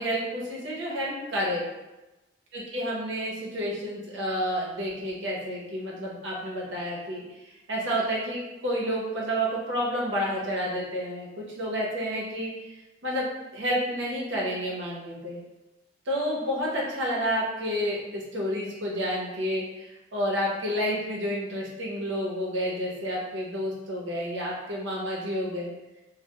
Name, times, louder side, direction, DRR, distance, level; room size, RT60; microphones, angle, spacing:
voice 1, 0.0-1.7 2.5-12.5 13.0-13.2 13.5-15.4 16.1-25.7, equal, 80° right, -4 dB, 0.7 m, -30 dB
2.2 x 2.1 x 2.8 m, 1.0 s
head